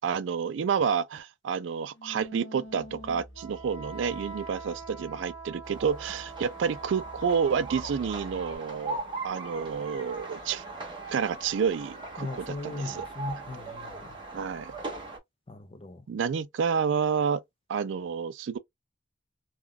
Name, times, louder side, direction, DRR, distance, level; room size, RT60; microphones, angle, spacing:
voice 1, 0.0-10.6 11.1-13.0 14.3-14.7 16.1-17.4 17.7-18.6, right 6 dB, 70° right, 0.4 m, -29 dB
Wind instrument woodwind instrument, 2.0-8.2, right 3 dB, 80° left, 0.8 m, -44 dB
sound 1, 2.6-8.6, right 1 dB, 55° right, 1.2 m, -49 dB
sound 2, 5.6-15.2, right 3 dB, 25° right, 1.0 m, -40 dB
voice 2, 12.2-14.2 15.5-16.1, left 3 dB, 30° left, 0.4 m, -38 dB
3.5 x 2.2 x 2.2 m
head